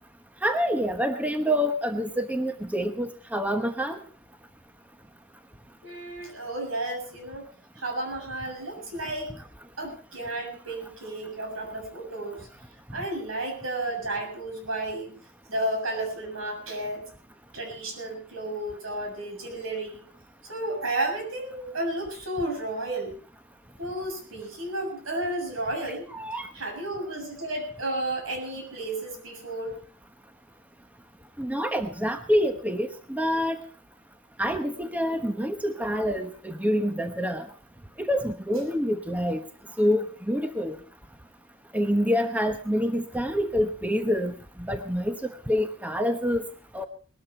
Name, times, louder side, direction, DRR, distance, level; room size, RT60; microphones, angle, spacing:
voice 1, 0.4-4.0 26.1-26.5 31.4-33.6 34.4-37.4 38.0-39.4 39.8-40.8 41.7-44.3 44.6-45.2 45.5-46.4 46.7-46.9, equal, 10° right, 7 dB, 1.1 m, -26 dB
voice 2, 5.8-7.5 7.8-9.4 9.8-12.5 12.9-15.2 15.5-17.0 17.5-20.0 20.5-23.1 23.8-26.1 26.5-29.8, right 1 dB, 80° right, 3 dB, 7.1 m, -32 dB
20.0 x 13.0 x 4.4 m, 0.42 s
head